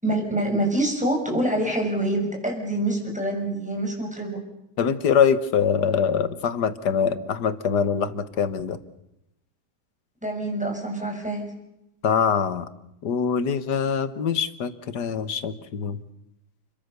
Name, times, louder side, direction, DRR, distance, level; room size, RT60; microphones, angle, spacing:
voice 1, 0.0-4.4 10.2-11.5, right 1 dB, 5° right, 1 dB, 6.2 m, -26 dB
voice 2, 4.8-8.8 12.0-12.7 13.0-16.0, left 7 dB, 80° left, 13 dB, 1.9 m, -23 dB
30.0 x 22.0 x 6.8 m, 0.84 s
omnidirectional pair, 1.8 m